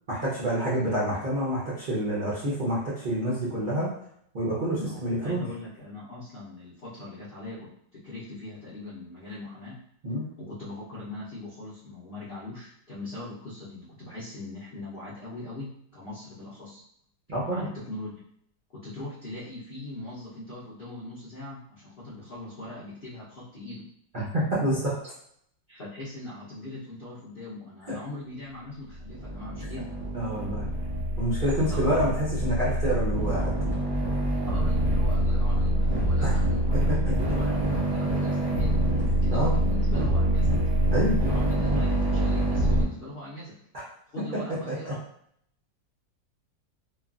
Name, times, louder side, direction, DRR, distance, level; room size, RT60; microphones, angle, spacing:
voice 1, 0.1-3.9 4.3-5.5 10.0-10.3 17.3-17.7 24.1-24.9 30.1-30.7 31.2-33.5 36.2-36.3 37.0-37.1 39.3-39.6 40.9-41.2 43.7-43.8 44.7-44.9, right 1 dB, 80° right, -8 dB, 0.4 m, -27 dB
voice 2, 4.8-9.8 10.4-15.7 15.9-16.8 17.5-18.2 18.7-23.8 25.7-29.9 31.5-32.2 34.5-40.5 41.3-43.5 44.1-45.0, left 2 dB, 85° left, -9 dB, 0.4 m, -40 dB
sound 1, 28.9-42.8, equal, 50° right, 0.8 m, -25 dB
3.0 x 2.4 x 2.4 m, 0.68 s
omnidirectional pair, 2.0 m